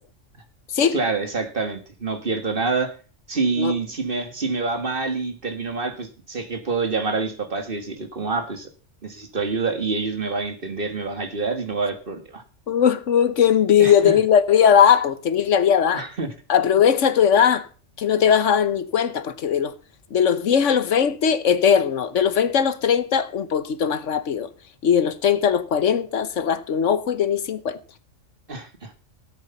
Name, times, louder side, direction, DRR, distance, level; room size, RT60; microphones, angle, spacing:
voice 1, 0.9-2.9 3.3-8.7 9.0-12.4 13.8-14.2 15.9-16.3 28.5-28.9, right 4 dB, 45° right, 2.0 m, -27 dB
voice 2, 12.7-16.1 16.5-17.7 18.0-19.7 20.1-24.5 24.8-27.8, left 8 dB, 75° left, 1.3 m, -19 dB
14.5 x 8.2 x 5.6 m
omnidirectional pair, 1.3 m